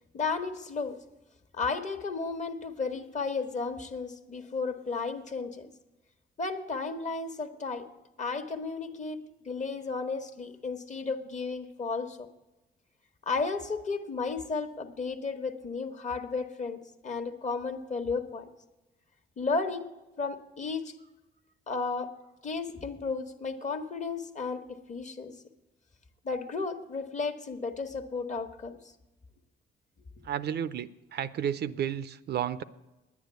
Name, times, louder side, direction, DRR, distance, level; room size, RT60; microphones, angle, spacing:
voice 1, 0.1-1.0 1.5-5.7 6.4-7.9 8.2-12.3 13.3-18.5 19.4-19.9 20.2-20.9 21.7-22.1 22.4-25.4 26.2-28.8, left 4 dB, 35° left, 8 dB, 1.2 m, -33 dB
voice 2, 30.2-32.6, right 9 dB, 60° right, 15 dB, 0.5 m, -32 dB
9.9 x 9.6 x 8.0 m, 1.0 s
cardioid pair, 90°, 20 cm